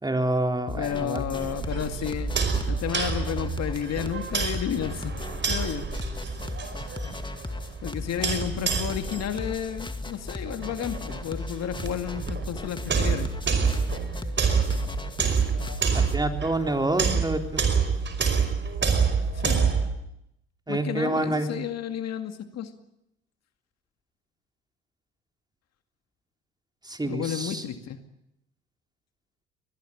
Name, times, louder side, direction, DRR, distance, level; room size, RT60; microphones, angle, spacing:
voice 1, 0.0-1.2 15.9-17.6 20.7-21.5 26.9-27.6, right 2 dB, 15° right, 5 dB, 3.9 m, -27 dB
sound 1, 0.7-16.2, left 2 dB, 15° left, 2.2 m, -37 dB
voice 2, 0.8-2.3 2.7-5.2 5.5-5.9 7.8-13.3 19.3-19.8 20.7-22.7 27.0-28.0, left 9 dB, 60° left, 8 dB, 2.3 m, -32 dB
sound 2, 1.4-19.9, right 5 dB, 35° right, 5.2 m, -28 dB
23.5 x 20.0 x 8.8 m, 0.79 s
supercardioid pair, 70°, 30 cm